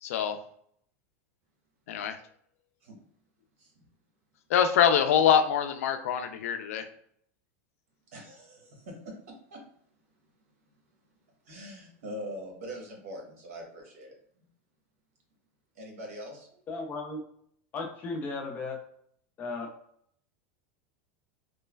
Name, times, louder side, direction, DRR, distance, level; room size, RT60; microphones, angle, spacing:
voice 1, 0.0-0.4 1.9-2.2 4.5-6.9, left 8 dB, 80° left, 7 dB, 0.4 m, -24 dB
voice 2, 8.1-9.6 11.4-14.1 15.7-16.6, equal, 80° right, 0 dB, 1.0 m, -43 dB
voice 3, 16.7-17.2 17.7-18.8 19.4-19.7, left 3 dB, 25° left, 1 dB, 0.5 m, -35 dB
3.1 x 2.0 x 2.2 m, 0.66 s
supercardioid pair, 155°, 8 cm